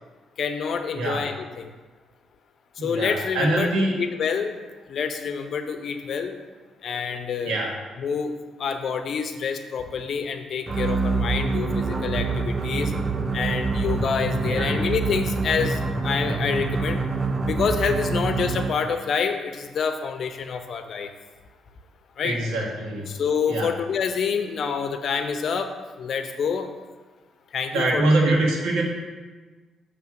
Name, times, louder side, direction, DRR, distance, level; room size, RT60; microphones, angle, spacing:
voice 1, 0.4-1.7 2.8-4.6 4.9-6.4 6.8-7.5 8.0-8.3 8.6-12.9 13.3-17.0 17.5-21.1 22.2-22.4 23.1-25.7 26.0-26.7 27.5-28.3, left 6 dB, 60° left, 7 dB, 0.7 m, -27 dB
voice 2, 2.8-4.0 7.4-7.7 14.4-14.8 22.2-23.0 23.5-23.7 27.7-28.8, right 2 dB, 90° right, -1 dB, 1.5 m, -24 dB
sound 1, 10.7-18.9, right 3 dB, 25° right, 0.6 m, -26 dB
7.3 x 3.4 x 5.9 m, 1.3 s
cardioid pair, 90°, 0 cm